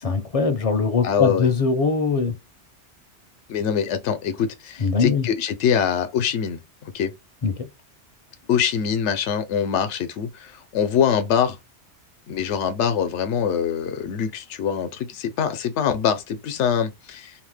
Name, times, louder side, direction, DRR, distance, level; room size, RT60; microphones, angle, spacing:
voice 1, 0.0-2.3 4.8-5.3 7.4-7.5, left 4 dB, 45° left, 0.5 m, -21 dB
voice 2, 1.0-1.5 3.5-7.1 8.5-11.6 12.3-17.3, left 8 dB, 80° left, 0.9 m, -24 dB
2.7 x 2.1 x 3.2 m
omnidirectional pair, 1.2 m